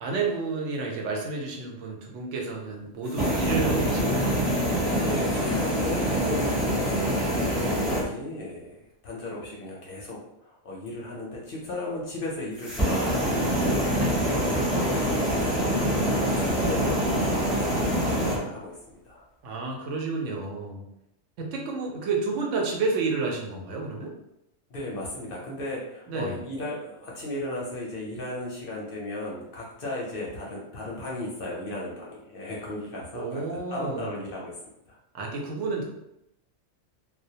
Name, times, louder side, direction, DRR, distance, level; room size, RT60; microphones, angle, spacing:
voice 1, 0.0-4.3 14.0-14.4 19.4-20.8 21.4-24.1 26.1-26.4 33.1-34.2 35.1-35.8, right 4 dB, 80° right, 0 dB, 0.9 m, -30 dB
sound 1, 3.0-8.0 12.6-18.4, equal, ahead, 0.4 m, -25 dB
voice 2, 5.0-18.8 19.0-19.2 24.7-33.4 33.7-34.5 34.9-35.0, left 1 dB, 60° left, -3 dB, 0.6 m, -36 dB
2.2 x 2.1 x 2.7 m, 0.84 s
omnidirectional pair, 1.3 m